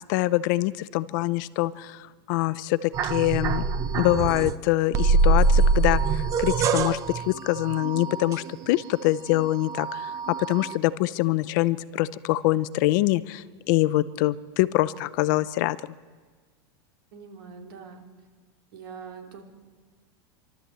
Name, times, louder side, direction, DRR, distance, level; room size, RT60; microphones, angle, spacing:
voice 1, 0.1-3.6 3.9-15.8, left 17 dB, 50° left, 16 dB, 0.6 m, -25 dB
sound 1, 2.9-4.6 4.9-8.9 9.3-10.8, right 4 dB, 25° right, 0.7 m, -24 dB
voice 2, 17.1-18.0 18.7-19.4, right 6 dB, 70° right, 3 dB, 3.3 m, -43 dB
27.5 x 12.5 x 8.0 m, 1.5 s
supercardioid pair, 160°, 13 cm